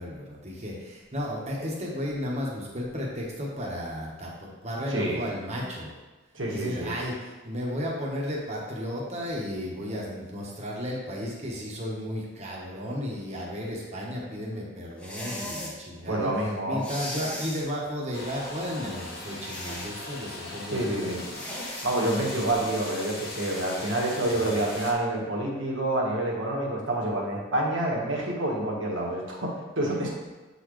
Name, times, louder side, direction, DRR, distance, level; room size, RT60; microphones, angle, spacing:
voice 1, 0.0-5.9 6.5-16.3 16.7-21.2 21.9-22.3 24.3-24.6, equal, 35° right, -3 dB, 1.3 m, -34 dB
voice 2, 4.9-5.2 6.3-6.9 16.1-16.8 20.7-21.2 21.8-30.1, right 1 dB, 75° right, -3 dB, 1.5 m, -28 dB
sound 1, 15.0-15.8 16.8-17.7 19.4-19.9 21.3-21.9, left 1 dB, 5° left, 0.8 m, -37 dB
sound 2, 18.1-24.9, left 2 dB, 55° left, 1.0 m, -39 dB
7.7 x 4.1 x 3.2 m, 1.2 s
head